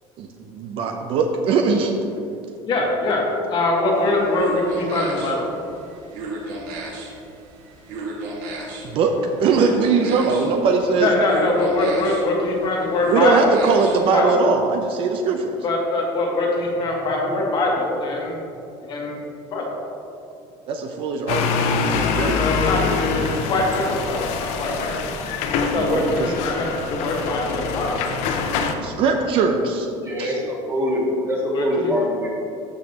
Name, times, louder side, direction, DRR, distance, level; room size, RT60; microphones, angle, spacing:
voice 1, 0.5-1.9 8.8-9.1 9.4-11.1 13.1-15.5 20.7-21.6 22.1-22.6 25.7-26.3 28.8-29.9 30.2-30.3, right 4 dB, 50° right, 4 dB, 0.6 m, -20 dB
voice 2, 2.7-3.2 3.5-5.5 11.0-13.6 14.1-14.3 15.6-18.4 18.8-19.2 19.5-19.7 22.3-24.9 25.7-28.0 31.5-31.9, left 2 dB, 40° left, -1 dB, 1.5 m, -22 dB
sound 1, 3.9-14.2, right 2 dB, 75° right, 1.6 m, -34 dB
sound 2, 21.3-28.7, left 5 dB, 65° left, 0.7 m, -24 dB
voice 3, 30.0-32.3, left 1 dB, 20° right, -3 dB, 1.6 m, -23 dB
13.0 x 5.3 x 2.9 m, 2.6 s
cardioid pair, 150°, 12 cm